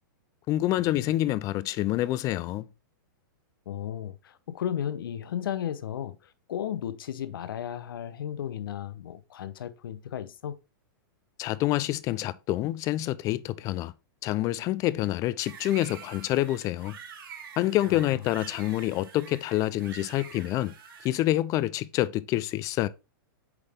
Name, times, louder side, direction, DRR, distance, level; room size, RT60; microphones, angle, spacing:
voice 1, 0.5-2.7 11.4-13.9 14.2-17.0 17.6-20.7 21.0-22.9, left 15 dB, 30° left, 0.4 m, -27 dB
voice 2, 3.7-10.6, left 10 dB, 80° left, 0.8 m, -34 dB
sound 1, 15.4-21.1, right 7 dB, 80° right, 2.3 m, -46 dB
8.0 x 3.5 x 3.6 m
hypercardioid pair, 140°, 12 cm